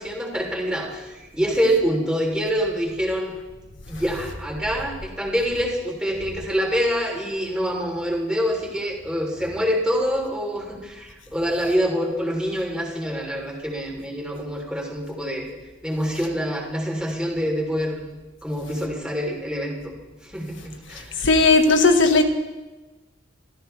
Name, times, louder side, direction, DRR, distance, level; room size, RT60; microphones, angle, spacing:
voice 1, 0.0-3.3 3.9-15.5 15.8-18.1 18.4-19.9 20.2-21.1, equal, 5° right, 3.7 m, -26 dB
voice 2, 21.2-22.2, left 3 dB, 70° left, 1.7 m, -16 dB
29.0 x 14.0 x 3.5 m
head